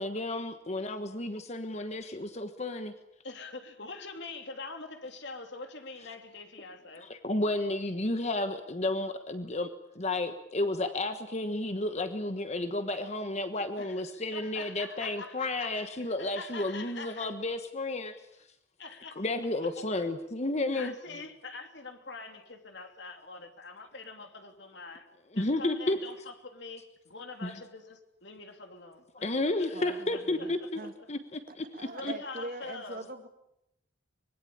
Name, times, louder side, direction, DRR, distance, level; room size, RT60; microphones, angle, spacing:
voice 1, 0.0-2.9 7.0-9.7 9.9-18.2 19.2-20.9 25.3-26.0 27.4-27.6 29.2-30.8 31.1-31.2 31.6-32.1, left 2 dB, 35° left, 1.2 m, -32 dB
voice 2, 3.2-7.1 13.8-17.3 18.8-19.3 19.6-19.7 20.7-25.1 25.3-29.3 29.6-30.9 31.8-33.1, left 3 dB, 60° left, 3.2 m, -44 dB
voice 3, 29.7-30.9 31.5-33.3, right 2 dB, 50° right, 2.7 m, -43 dB
25.0 x 22.0 x 8.7 m
head